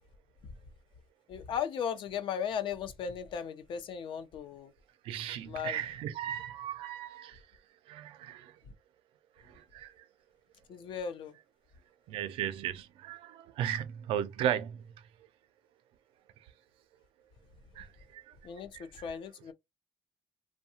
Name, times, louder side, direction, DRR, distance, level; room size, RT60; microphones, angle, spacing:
voice 1, 1.3-4.7 5.5-5.8 10.7-11.3 18.4-18.7 19.0-19.5, left 7 dB, 65° left, 0.6 m, -36 dB
voice 2, 5.0-7.4 7.9-8.6 9.4-10.1 12.1-14.9 17.7-18.3 18.7-19.0, right 10 dB, 85° right, 0.4 m, -36 dB
2.7 x 2.2 x 2.7 m
cardioid pair, 100°, 9 cm